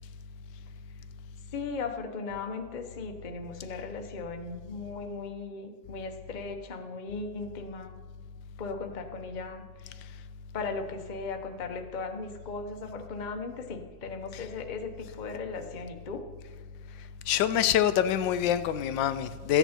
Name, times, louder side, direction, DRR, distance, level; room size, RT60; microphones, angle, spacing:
voice 1, 1.5-8.0 8.6-9.6 10.5-16.3, left 4 dB, 35° left, 5 dB, 0.8 m, -37 dB
voice 2, 17.3-19.6, left 10 dB, 90° left, 12 dB, 1.3 m, -25 dB
14.0 x 9.1 x 4.4 m, 1.5 s
omnidirectional pair, 1.9 m